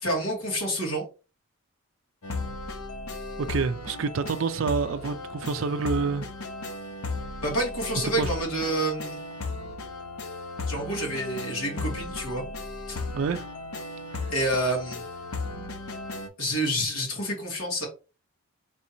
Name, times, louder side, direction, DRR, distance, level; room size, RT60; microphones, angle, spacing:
voice 1, 0.0-1.0 7.4-9.2 10.7-12.4 12.9-13.0 14.3-15.0 16.4-17.9, right 1 dB, 70° left, 1.9 m, -28 dB
sound 1, 2.2-16.3, left 3 dB, 85° left, 0.7 m, -35 dB
voice 2, 3.4-6.3 8.2-8.3 13.1-13.5 14.1-14.3, right 5 dB, 65° right, 0.4 m, -28 dB
3.4 x 2.7 x 4.3 m
head